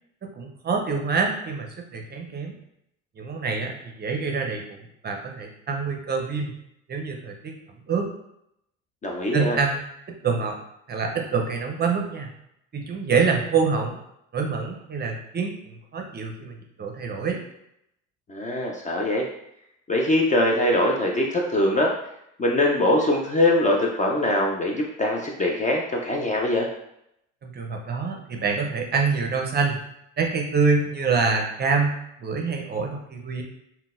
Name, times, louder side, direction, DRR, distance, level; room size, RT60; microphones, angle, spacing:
voice 1, 0.2-2.5 3.2-6.5 6.9-7.6 7.9-8.1 9.3-10.6 10.9-12.3 12.7-14.0 14.3-17.4 27.4-29.8 30.2-31.9 32.2-33.4, right 4 dB, 25° right, 2 dB, 0.6 m, -26 dB
voice 2, 9.0-9.6 18.3-19.2 19.9-21.9 22.4-26.7, left 1 dB, 20° left, -1 dB, 0.4 m, -22 dB
3.7 x 2.2 x 2.4 m, 0.78 s
hypercardioid pair, 70°, 37 cm